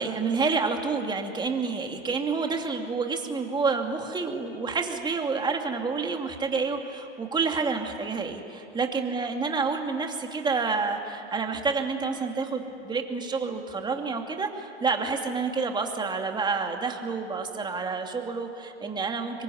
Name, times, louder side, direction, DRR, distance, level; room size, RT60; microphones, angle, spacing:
voice 1, 0.0-19.4, right 4 dB, 15° right, 3 dB, 2.5 m, -29 dB
26.5 x 22.5 x 10.0 m, 2.6 s
hypercardioid pair, 130°, 34 cm